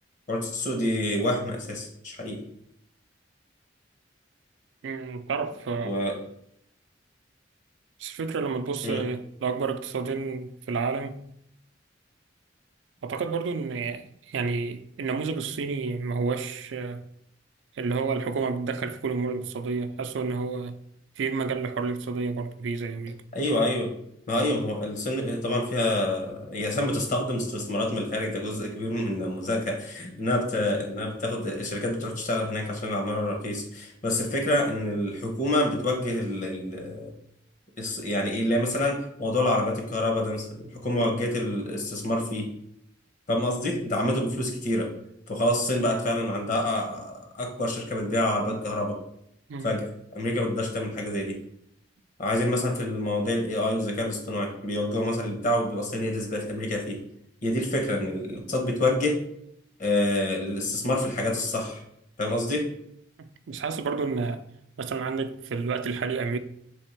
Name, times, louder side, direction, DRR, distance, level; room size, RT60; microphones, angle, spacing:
voice 1, 0.3-2.4 5.8-6.2 8.8-9.0 23.3-23.9 24.3-37.1 37.8-42.5 43.3-44.9 45.3-49.0 49.6-51.4 52.2-57.0 57.4-59.2 59.8-61.8 62.2-62.7, left 1 dB, 45° left, 0.9 m, -27 dB
voice 2, 4.8-5.9 8.0-11.3 13.0-17.0 17.8-20.8 21.2-23.2 49.5-49.7 63.5-64.4 64.8-66.4, right 4 dB, 85° right, 0.4 m, -30 dB
3.5 x 3.3 x 4.4 m
head